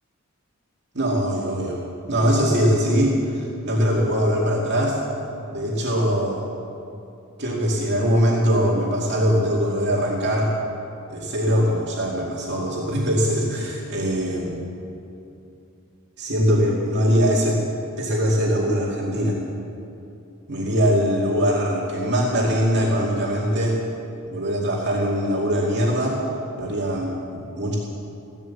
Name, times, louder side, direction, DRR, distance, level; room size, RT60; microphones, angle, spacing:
voice 1, 0.9-1.8 2.1-5.0 5.5-6.4 7.4-10.5 11.1-14.6 16.2-17.6 18.0-19.4 20.5-23.8 24.3-26.2 26.6-27.8, equal, 55° right, -4 dB, 2.2 m, -22 dB
16.0 x 12.5 x 7.1 m, 2.8 s
head